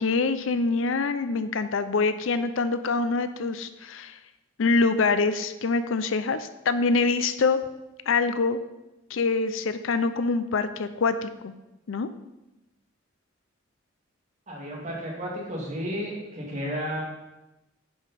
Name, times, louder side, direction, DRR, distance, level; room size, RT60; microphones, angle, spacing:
voice 1, 0.0-4.2 4.6-7.6 8.1-8.6 9.1-11.5 11.9-12.1, left 4 dB, 70° left, 11 dB, 0.5 m, -25 dB
voice 2, 14.5-17.0, equal, 35° right, -3 dB, 2.3 m, -32 dB
10.0 x 5.4 x 4.1 m, 0.98 s
head